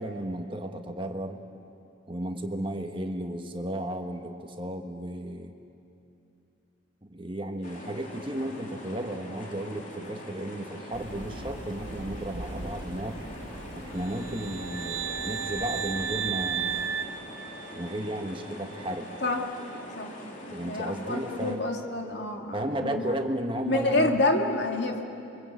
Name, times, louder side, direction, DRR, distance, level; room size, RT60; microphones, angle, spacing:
voice 1, 0.0-1.4 2.1-5.5 7.0-13.2 13.8-16.9 17.7-19.2 20.5-21.6 22.5-24.2, right 1 dB, 25° right, 5 dB, 1.4 m, -34 dB
sound 1, 7.6-21.6, left 1 dB, 40° left, 3.4 m, -43 dB
sound 2, 10.9-16.9, equal, 55° right, 2.5 m, -42 dB
sound 3, 14.1-18.1, right 7 dB, 75° right, 1.0 m, -33 dB
voice 2, 20.4-23.0 23.7-25.0, left 2 dB, 60° left, 2 dB, 2.6 m, -28 dB
28.5 x 24.5 x 8.4 m, 2.7 s
head